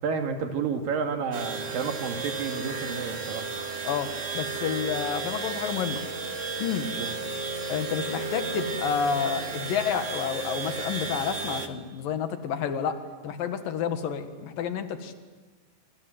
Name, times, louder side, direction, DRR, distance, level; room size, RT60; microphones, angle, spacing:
voice 1, 0.0-3.5 7.0-7.1, right 5 dB, 85° right, 4 dB, 3.9 m, -30 dB
sound 1, 1.3-11.7, right 4 dB, 55° right, 0.8 m, -33 dB
voice 2, 3.8-6.0 6.6-6.9 7.7-13.0 13.2-15.2, left 7 dB, 85° left, 8 dB, 3.4 m, -30 dB
27.5 x 26.0 x 7.8 m, 1.3 s
omnidirectional pair, 3.9 m